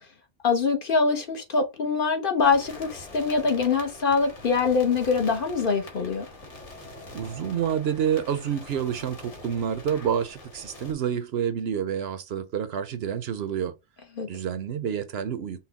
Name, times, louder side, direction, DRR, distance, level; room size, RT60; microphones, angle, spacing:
voice 1, 0.4-6.3 14.2-14.3, left 4 dB, 50° left, 1.0 m, -24 dB
sound 1, 2.4-10.9, left 2 dB, 85° left, 1.8 m, -44 dB
voice 2, 7.1-13.7 14.3-15.6, right 8 dB, 65° right, 0.8 m, -28 dB
5.6 x 2.2 x 4.0 m
omnidirectional pair, 1.2 m